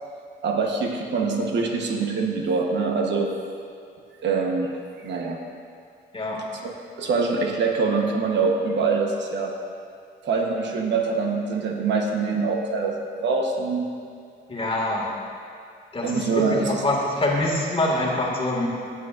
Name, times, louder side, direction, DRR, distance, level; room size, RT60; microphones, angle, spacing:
voice 1, 0.4-3.3 4.2-4.7 5.0-5.4 6.6-9.5 10.2-13.9 16.0-16.8, right 4 dB, 65° right, 1 dB, 1.1 m, -24 dB
voice 2, 14.5-15.1 15.9-18.7, left 1 dB, 25° left, -2 dB, 1.8 m, -25 dB
15.0 x 7.3 x 2.5 m, 2.3 s
cardioid pair, 90°, 20 cm